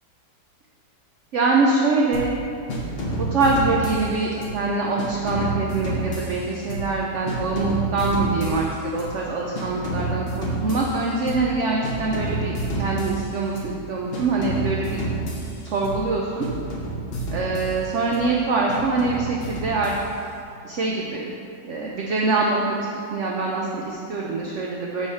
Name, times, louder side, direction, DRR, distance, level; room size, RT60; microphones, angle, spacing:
voice 1, 1.3-2.3 3.2-15.0 15.6-16.5 17.3-19.9 20.6-21.3 21.6-25.1, right 3 dB, 80° right, -2 dB, 0.6 m, -24 dB
sound 1, 2.1-2.4 2.7-4.6 5.0-7.0 7.3-9.2 9.5-11.6 11.8-13.8 14.1-16.1 16.4-18.3 18.7-20.4, right 2 dB, 45° left, 0.8 m, -29 dB
7.0 x 3.2 x 5.4 m, 2.5 s
omnidirectional pair, 1.9 m